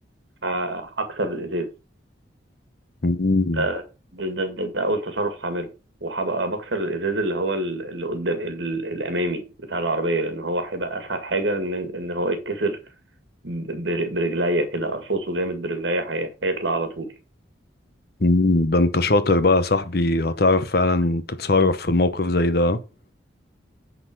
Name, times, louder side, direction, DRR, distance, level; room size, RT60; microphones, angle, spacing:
voice 1, 0.4-1.7 3.5-3.8 4.1-5.7 6.0-12.8 13.4-17.1, right 1 dB, 70° right, 2.0 m, -26 dB
voice 2, 3.0-3.7 18.2-22.8, left 2 dB, 55° left, 0.9 m, -20 dB
10.0 x 4.0 x 6.0 m
head